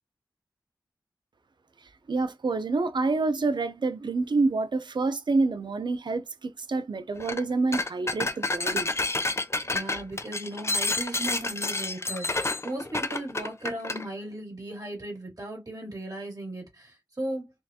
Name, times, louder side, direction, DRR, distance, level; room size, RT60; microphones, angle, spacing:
voice 1, 2.1-8.9, right 3 dB, 80° right, 0.5 m, -27 dB
sound 1, 7.2-7.4 7.7-14.0, left 2 dB, 35° left, 0.5 m, -29 dB
voice 2, 9.7-17.5, right 1 dB, 50° right, 2.2 m, -36 dB
4.5 x 2.4 x 2.8 m
wide cardioid pair, 60°, 8 cm